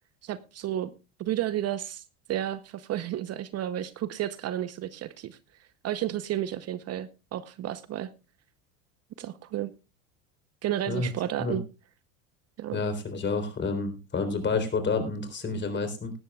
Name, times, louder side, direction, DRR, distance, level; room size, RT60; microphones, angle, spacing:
voice 1, 0.2-0.9 1.2-2.0 2.3-5.4 5.8-8.1 9.2-9.7 10.6-11.6 12.6-12.8, right 12 dB, 40° right, 15 dB, 0.8 m, -32 dB
voice 2, 12.7-16.1, left 4 dB, 30° left, 9 dB, 3.9 m, -29 dB
18.0 x 12.5 x 2.3 m, 0.28 s
supercardioid pair, 95°, 38 cm